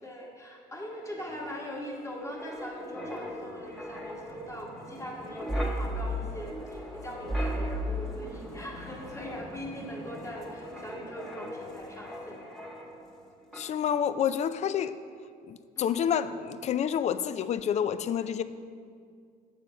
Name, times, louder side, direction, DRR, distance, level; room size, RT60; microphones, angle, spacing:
voice 1, 0.0-12.4 15.8-15.9, equal, 15° left, -2 dB, 1.7 m, -41 dB
Wind, 0.8-13.2 13.5-13.8, equal, ahead, 1.1 m, -37 dB
voice 2, 13.5-15.0 15.4-18.4, left 8 dB, 40° left, 13 dB, 0.4 m, -28 dB
7.3 x 6.6 x 5.1 m, 2.2 s
cardioid pair, 110°, 17 cm